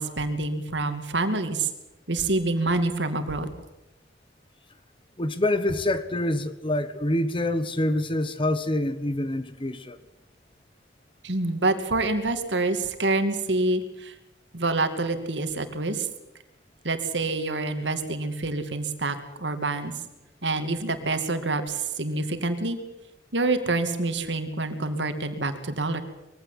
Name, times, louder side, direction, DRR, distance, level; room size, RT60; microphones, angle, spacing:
voice 1, 0.0-1.7 2.1-3.5 11.2-14.1 14.5-16.1 16.8-19.9 20.4-22.8 23.3-26.0, right 2 dB, 70° right, 8 dB, 2.4 m, -27 dB
voice 2, 5.2-10.0, left 1 dB, 30° left, 13 dB, 1.2 m, -26 dB
22.0 x 16.0 x 9.9 m, 0.96 s
head